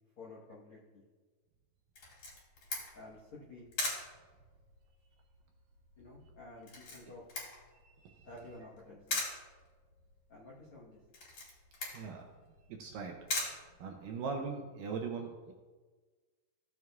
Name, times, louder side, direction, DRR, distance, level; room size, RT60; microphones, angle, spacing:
voice 1, 0.2-1.0 2.9-3.7 6.0-7.2 8.2-9.2 10.3-11.0, left 2 dB, 90° left, -6 dB, 1.1 m, -51 dB
Camera, 2.0-14.4, left 2 dB, 40° left, 3.1 m, -42 dB
voice 2, 7.8-8.3 11.9-12.2 12.7-13.2 13.5-15.5, right 5 dB, 80° right, 2 dB, 2.0 m, -41 dB
15.5 x 7.7 x 2.3 m, 1.4 s
omnidirectional pair, 4.5 m